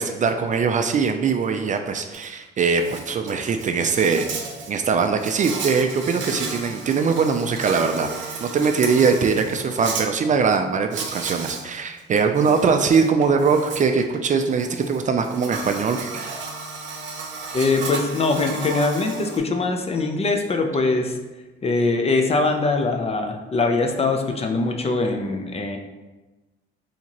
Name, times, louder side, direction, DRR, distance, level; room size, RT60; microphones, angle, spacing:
voice 1, 0.0-4.3 4.7-16.4, right 5 dB, 40° right, 6 dB, 0.4 m, -21 dB
Insect, 2.1-2.3 2.6-10.0 10.9-11.6 12.0-19.4, right 4 dB, 70° right, 0.7 m, -33 dB
voice 2, 17.5-21.1 21.6-25.8, left 3 dB, 30° left, 4 dB, 0.5 m, -22 dB
4.2 x 2.8 x 2.9 m, 1.1 s
cardioid pair, 90°, 20 cm